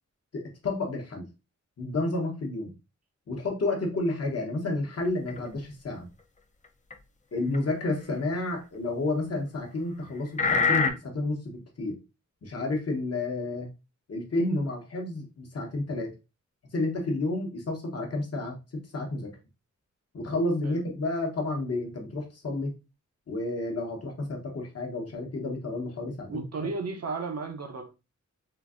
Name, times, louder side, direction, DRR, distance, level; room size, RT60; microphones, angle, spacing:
voice 1, 0.3-1.3 1.8-2.7 3.3-6.1 7.3-12.0 12.4-13.7 14.1-16.1 16.7-19.3 20.1-22.7 23.3-26.4, left 2 dB, 55° left, 0.9 m, -31 dB
sound 1, 5.1-5.4 6.9-7.0 7.5-7.6 9.1-9.2 10.4-10.9, left 4 dB, 25° left, 0.4 m, -23 dB
voice 2, 26.3-28.0, right 4 dB, 55° right, 0.6 m, -34 dB
3.8 x 2.6 x 2.4 m
wide cardioid pair, 145°, 30 cm